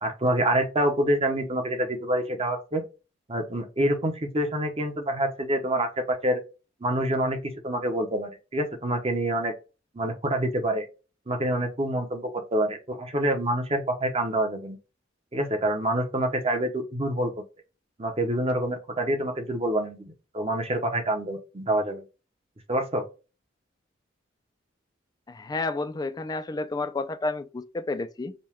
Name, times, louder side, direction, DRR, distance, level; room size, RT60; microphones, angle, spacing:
voice 1, 0.0-2.8 3.3-6.4 6.8-9.5 9.9-10.8 11.3-14.8 15.3-17.3 18.0-22.0 22.7-23.0, right 1 dB, 30° right, 0.8 m, -27 dB
voice 2, 25.3-28.3, left 3 dB, 20° left, 0.3 m, -31 dB
5.2 x 2.2 x 3.0 m
head